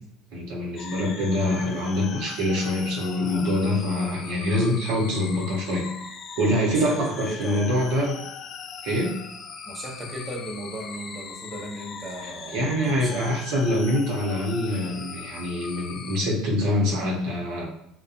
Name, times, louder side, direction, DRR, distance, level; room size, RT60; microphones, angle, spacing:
voice 1, 0.3-5.9 6.4-8.1 8.8-9.1 12.5-17.7, left 1 dB, 75° right, -2 dB, 0.9 m, -25 dB
sound 1, 0.8-16.2, left 6 dB, 45° left, 0.3 m, -40 dB
voice 2, 6.5-7.7 9.7-13.4, right 1 dB, 15° right, -2 dB, 0.8 m, -36 dB
2.7 x 2.2 x 2.5 m, 0.77 s
supercardioid pair, 90°, 0 cm